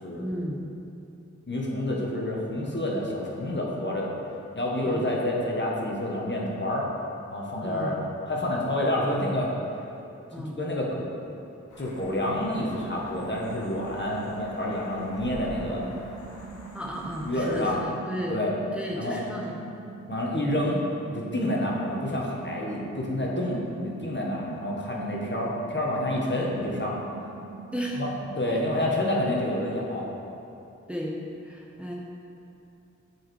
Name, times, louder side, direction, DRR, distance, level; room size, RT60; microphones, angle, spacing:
voice 1, 0.2-0.6 4.8-5.1 7.6-8.0 10.3-10.6 16.7-18.4 18.7-19.6 20.7-20.8 27.7-28.0 30.9-31.9, equal, 5° right, -2 dB, 0.8 m, -34 dB
voice 2, 1.5-4.1 4.5-6.9 7.3-8.0 8.3-9.5 10.5-11.0 11.8-15.9 17.2-17.8 18.3-18.5 19.0-19.2 20.1-20.8 21.1-27.0 28.0-28.1 28.4-30.1, left 1 dB, 40° left, -3 dB, 1.4 m, -28 dB
sound 1, 11.7-17.7, left 1 dB, 85° left, 1.1 m, -47 dB
sound 2, 13.1-28.7, right 6 dB, 70° right, 0.7 m, -44 dB
7.3 x 4.9 x 4.7 m, 2.8 s
cardioid pair, 50°, 30 cm